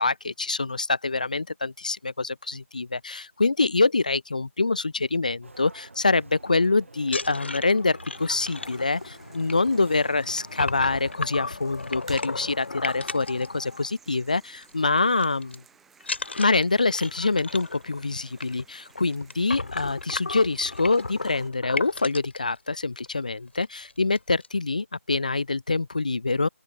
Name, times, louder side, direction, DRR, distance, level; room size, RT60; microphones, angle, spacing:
voice 1, 0.0-15.6 16.4-26.5, left 3 dB, 35° left, 0.5 m, -25 dB
sound 1, 5.4-11.2, right 3 dB, 60° right, 2.8 m, -48 dB
sound 2, 7.0-14.2 14.5-14.7 15.0-15.6 16.0-22.4 23.1-23.2 23.5-23.6 23.9-24.5, left 3 dB, 50° left, 1.2 m, -35 dB
sound 3, 8.1-21.5, right 6 dB, ahead, 2.5 m, -57 dB
open air
figure-of-eight pair, 175°, 8 cm